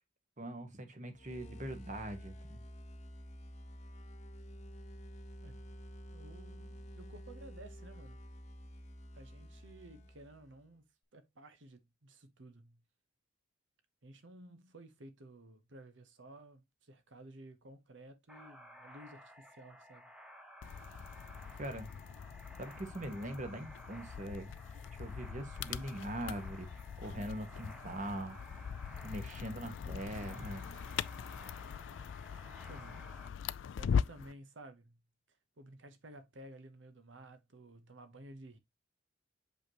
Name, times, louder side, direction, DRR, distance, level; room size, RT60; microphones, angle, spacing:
voice 1, 0.4-2.6 21.6-21.9 22.6-24.5 24.9-28.4 29.0-30.7, right 1 dB, 40° right, 1.4 m, -42 dB
sound 1, 1.1-10.6, equal, 35° left, 0.8 m, -50 dB
voice 2, 5.4-5.7 6.1-8.2 9.1-10.8 11.1-12.8 14.0-20.1 32.7-33.2 33.8-35.0 35.3-38.6, right 1 dB, 80° right, 1.0 m, -54 dB
sound 2, 18.3-33.3, equal, 5° right, 0.9 m, -55 dB
sound 3, 20.6-34.3, left 7 dB, 75° left, 0.4 m, -41 dB
6.5 x 5.4 x 3.0 m
head